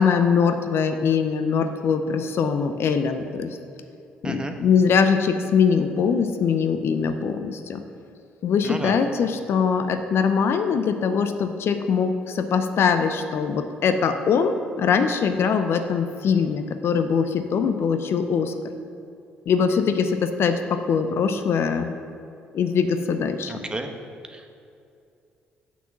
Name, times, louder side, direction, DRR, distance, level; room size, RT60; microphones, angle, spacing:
voice 1, 0.0-3.6 4.2-7.8 8.4-18.5 19.5-21.9 22.5-23.5, left 6 dB, 60° left, 8 dB, 0.6 m, -22 dB
voice 2, 4.2-4.5 8.6-8.9 23.5-23.9 24.3-24.6, right 2 dB, 20° right, 5 dB, 1.1 m, -32 dB
6.1 x 6.0 x 7.2 m, 2.5 s
hypercardioid pair, 55°, 5 cm